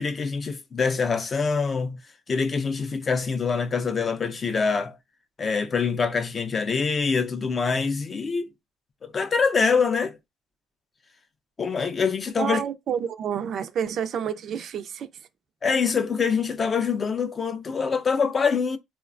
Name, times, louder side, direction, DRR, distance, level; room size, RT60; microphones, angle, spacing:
voice 1, 0.0-2.0 2.3-4.9 5.4-8.5 9.1-10.2 11.6-12.6 15.6-18.8, left 5 dB, 30° left, 0.4 m, -25 dB
voice 2, 12.4-15.1, right 8 dB, 55° right, 0.4 m, -29 dB
3.0 x 2.1 x 2.4 m
cardioid pair, 110°, 0 cm